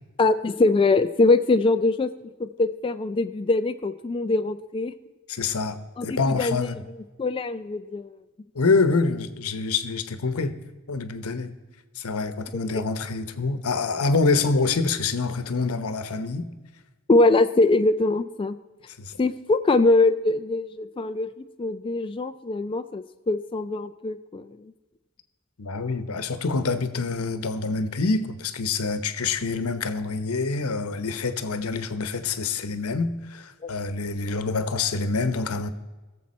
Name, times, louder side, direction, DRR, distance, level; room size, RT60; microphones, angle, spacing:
voice 1, 0.2-2.1 2.4-4.9 6.0-6.6 7.2-8.1 12.7-12.8 17.1-18.6 19.2-24.4, left 2 dB, 25° left, 0.3 m, -22 dB
voice 2, 5.3-6.8 8.5-10.6 10.9-11.5 12.0-16.5 19.0-19.1 25.6-35.7, left 4 dB, 80° left, 0.9 m, -26 dB
20.5 x 7.3 x 4.2 m
head